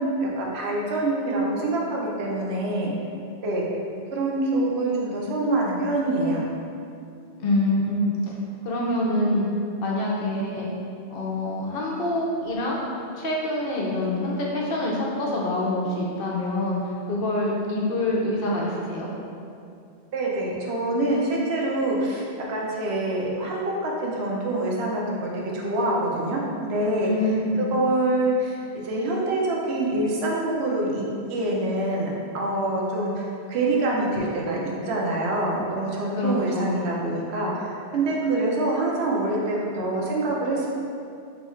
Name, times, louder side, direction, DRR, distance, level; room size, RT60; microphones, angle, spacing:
voice 1, 0.0-2.9 3.4-3.6 4.1-6.4 20.1-27.3 27.6-28.6 28.8-40.7, right 2 dB, 75° right, -3 dB, 0.9 m, -25 dB
voice 2, 7.4-8.3 8.6-9.5 9.8-10.7 11.1-12.8 13.1-16.8 17.1-19.1 27.0-27.6 36.2-36.7, left 1 dB, 65° left, -4 dB, 0.7 m, -26 dB
3.0 x 2.3 x 4.2 m, 2.5 s
omnidirectional pair, 1.1 m